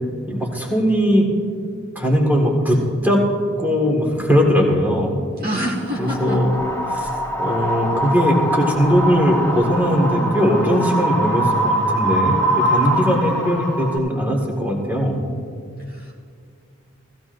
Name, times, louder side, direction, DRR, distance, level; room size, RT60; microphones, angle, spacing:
voice 1, 0.3-1.3 2.0-3.2 3.6-5.2 6.0-6.5 6.9-7.1 7.4-12.4 12.7-15.2, equal, 10° right, 0 dB, 1.8 m, -19 dB
voice 2, 5.3-6.4 7.0-7.2 15.8-16.1, equal, 45° right, -2 dB, 1.6 m, -27 dB
Wind, 5.9-14.0, right 1 dB, 10° left, 1.3 m, -23 dB
17.0 x 15.5 x 2.6 m, 2.2 s
head